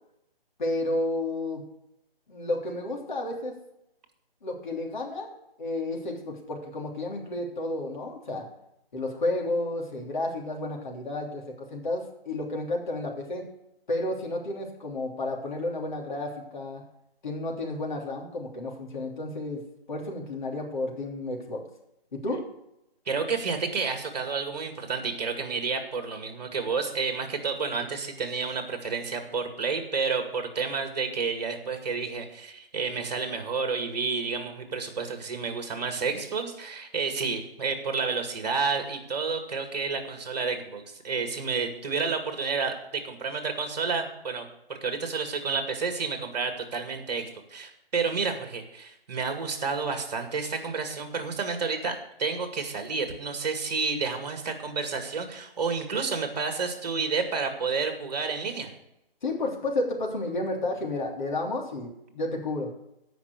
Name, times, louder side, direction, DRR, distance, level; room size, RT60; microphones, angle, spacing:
voice 1, 0.6-1.6 2.3-3.5 4.4-5.3 5.6-8.4 8.9-13.4 13.9-16.8 17.2-19.6 19.9-21.6 22.1-22.4 59.2-62.7, left 2 dB, 50° left, 0 dB, 3.3 m, -31 dB
voice 2, 23.1-44.4 44.7-58.7, right 4 dB, 45° right, 6 dB, 2.3 m, -30 dB
16.0 x 5.9 x 6.8 m, 0.83 s
figure-of-eight pair, 155°, 30 cm